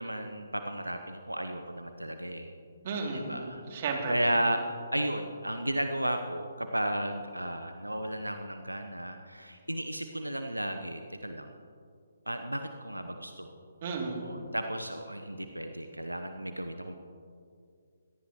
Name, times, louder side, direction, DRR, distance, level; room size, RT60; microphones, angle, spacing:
voice 1, 0.0-2.5 3.1-3.6 4.1-11.5 12.3-13.5 14.2-16.9, right 1 dB, 85° right, 6 dB, 1.0 m, -34 dB
voice 2, 2.8-4.1 13.8-14.2, right 4 dB, 40° right, 1 dB, 2.8 m, -34 dB
24.5 x 18.0 x 3.1 m, 2.4 s
figure-of-eight pair, 135°, 0 cm